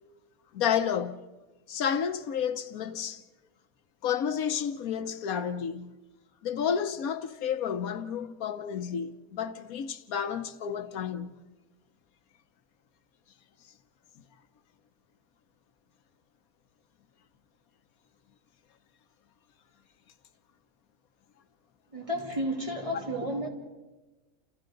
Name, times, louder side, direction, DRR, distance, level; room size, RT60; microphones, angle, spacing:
voice 1, 0.5-1.2 1.7-3.2 4.0-6.0 6.4-11.4, left 8 dB, 85° left, 1.3 m, -31 dB
voice 2, 21.9-23.5, equal, 20° right, 3.5 m, -32 dB
29.5 x 28.5 x 3.9 m
omnidirectional pair, 1.5 m